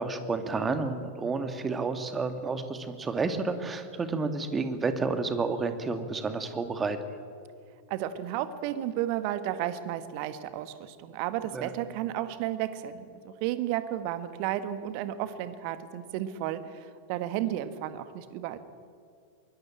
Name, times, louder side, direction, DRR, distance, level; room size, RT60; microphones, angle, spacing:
voice 1, 0.0-7.0 11.5-11.7, right 4 dB, 15° right, 8 dB, 2.4 m, -30 dB
voice 2, 7.9-18.6, right 12 dB, 45° right, 11 dB, 1.7 m, -33 dB
24.5 x 21.5 x 8.9 m, 2.3 s
figure-of-eight pair, 90°, 0 cm